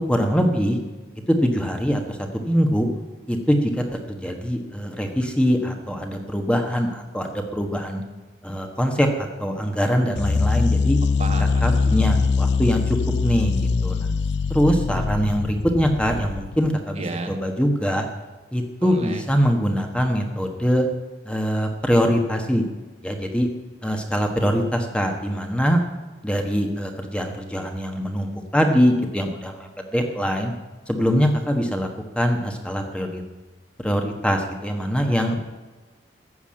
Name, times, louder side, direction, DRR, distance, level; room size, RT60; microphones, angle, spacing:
voice 1, 0.1-0.8 1.3-2.9 3.3-8.0 8.4-11.0 11.6-13.6 13.8-14.1 14.5-18.1 18.5-20.9 21.2-22.6 23.0-23.5 23.8-25.8 26.2-30.5 30.9-31.9 32.1-33.2 33.8-35.4, equal, 5° left, 4 dB, 1.3 m, -23 dB
sound 1, 10.2-16.7, left 4 dB, 65° left, 0.5 m, -22 dB
voice 2, 11.0-12.1 16.9-17.3 18.8-19.2 35.2-35.4, right 3 dB, 35° right, 5 dB, 1.2 m, -34 dB
14.5 x 7.1 x 8.7 m, 1.3 s
head